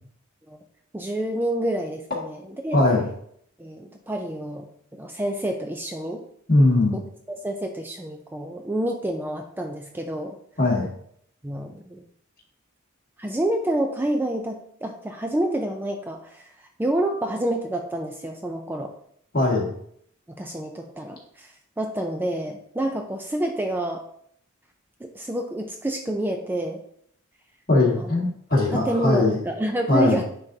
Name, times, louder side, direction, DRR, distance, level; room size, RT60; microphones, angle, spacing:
voice 1, 0.9-2.8 3.6-6.2 7.3-10.4 11.4-12.0 13.2-18.9 20.4-24.0 25.0-26.8 27.9-28.1 28.7-30.2, right 1 dB, 10° right, 3 dB, 0.4 m, -28 dB
voice 2, 2.7-3.1 6.5-7.0 10.6-10.9 19.3-19.7 27.7-29.4 29.9-30.2, left 2 dB, 45° left, -3 dB, 1.9 m, -20 dB
9.7 x 3.8 x 2.7 m, 0.67 s
head